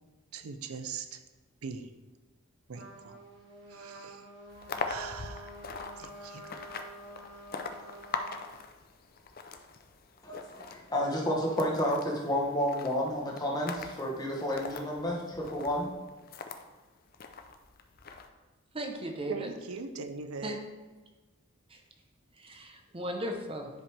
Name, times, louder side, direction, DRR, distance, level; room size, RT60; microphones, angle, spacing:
voice 1, 0.3-1.2 1.6-1.9 2.7-3.2 3.7-4.3 4.9-5.7 6.0-6.5 19.3-20.6, right 5 dB, 85° right, 9 dB, 0.6 m, -41 dB
Trumpet, 2.7-8.4, right 1 dB, 55° right, 1.5 m, -49 dB
sound 1, 4.5-16.6 17.1-18.3, left 4 dB, 45° left, 0.5 m, -42 dB
voice 2, 10.2-15.9, equal, 20° left, -2 dB, 1.2 m, -31 dB
voice 3, 18.7-19.5 20.4-20.6 21.7-21.8 22.4-23.7, equal, 25° right, 3 dB, 0.8 m, -36 dB
10.0 x 5.0 x 3.4 m, 1.2 s
head